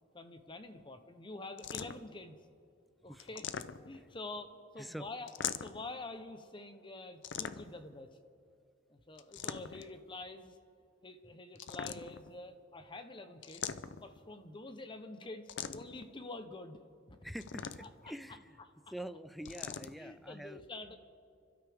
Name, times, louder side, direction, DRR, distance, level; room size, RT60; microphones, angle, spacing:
voice 1, 0.1-2.4 3.0-3.5 3.9-5.3 5.6-8.2 8.9-10.6 11.0-13.7 14.0-16.8 17.1-17.2 17.8-18.1 19.9-21.0, left 2 dB, 25° left, 8 dB, 0.8 m, -47 dB
sound 1, 1.6-2.2 3.2-4.1 5.3-5.9 7.2-7.9 9.2-9.9 11.5-12.3 13.4-14.2 15.5-16.0 17.4-18.1 19.4-19.9, left 8 dB, 70° left, 0.6 m, -41 dB
voice 2, 17.2-18.6 18.9-20.6, equal, ahead, 12 dB, 0.5 m, -45 dB
29.5 x 12.5 x 3.6 m, 2.4 s
head